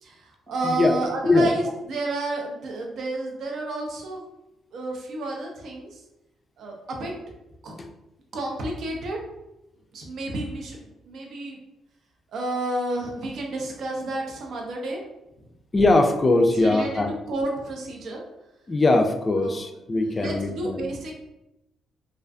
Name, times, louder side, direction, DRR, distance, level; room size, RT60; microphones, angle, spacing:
voice 1, 0.0-4.2 4.7-6.0 6.6-7.1 7.6-7.7 8.3-9.2 9.9-10.8 11.0-11.6 12.3-15.0 16.5-18.2 19.3-19.6 20.0-21.2, right 2 dB, 65° right, 0 dB, 0.5 m, -31 dB
voice 2, 0.6-1.0 1.2-1.5 7.8-7.9 15.7-17.1 18.7-20.8, left 2 dB, 25° left, 4 dB, 0.3 m, -21 dB
2.4 x 2.4 x 2.3 m, 0.90 s
cardioid pair, 90°, 0 cm